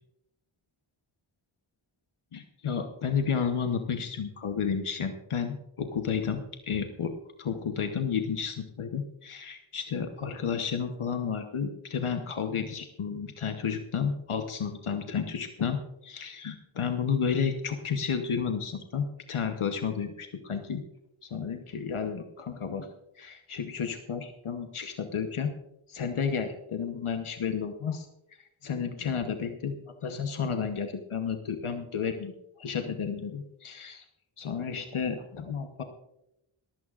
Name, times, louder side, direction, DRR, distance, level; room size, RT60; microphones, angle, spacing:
voice 1, 2.3-7.1 7.4-20.8 21.2-22.9 23.2-25.5 25.9-28.1 28.6-29.8 30.0-32.3 32.6-34.0 34.4-35.8, left 6 dB, 80° left, 6 dB, 1.1 m, -32 dB
19.5 x 15.5 x 2.5 m, 0.87 s
wide cardioid pair, 55°, 49 cm